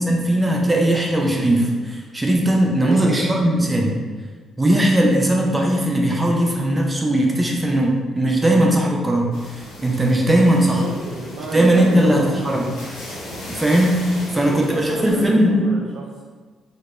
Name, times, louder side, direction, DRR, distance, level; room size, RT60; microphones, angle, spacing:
voice 1, 0.1-4.0 4.6-10.8 11.5-12.7 13.5-15.6, right 1 dB, 20° right, 0 dB, 0.4 m, -18 dB
voice 2, 2.8-3.3 10.8-12.7 14.3-16.2, right 3 dB, 80° right, -4 dB, 0.3 m, -32 dB
sound 1, 9.3-15.3, left 1 dB, 85° left, 0.6 m, -37 dB
2.2 x 2.0 x 2.9 m, 1.5 s
cardioid pair, 90°, 0 cm